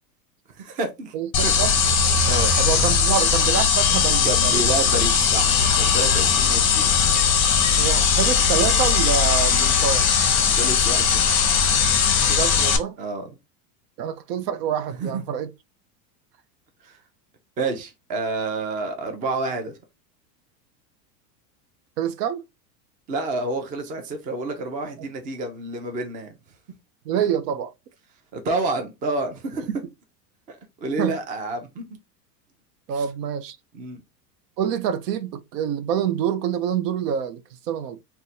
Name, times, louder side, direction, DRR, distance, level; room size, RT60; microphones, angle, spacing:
voice 1, 0.6-1.1 1.4-1.5 2.3-2.5 4.2-6.9 10.5-11.2 13.0-13.3 15.0-15.2 16.8-17.0 17.6-19.7 23.1-26.3 28.3-29.7 30.5-31.8 32.9-33.1 33.7-34.0, right 2 dB, 20° right, 0.4 m, -29 dB
sound 1, 1.3-12.8, left 6 dB, 25° left, 0.6 m, -19 dB
voice 2, 2.6-4.6 7.8-10.1 12.3-13.0 14.0-15.5 22.0-22.4 27.1-27.7 29.7-29.8 31.0-31.2 32.9-33.6 34.6-38.0, right 8 dB, 70° right, 0.6 m, -26 dB
2.5 x 2.2 x 4.1 m
supercardioid pair, 125°, 50 cm